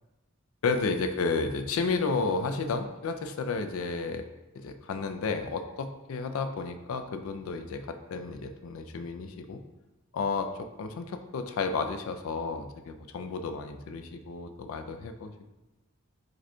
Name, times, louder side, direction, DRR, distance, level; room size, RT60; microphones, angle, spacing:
voice 1, 0.6-4.2 4.5-9.6 10.1-15.5, left 4 dB, 70° left, 7 dB, 0.4 m, -32 dB
4.9 x 4.3 x 2.2 m, 1.0 s
head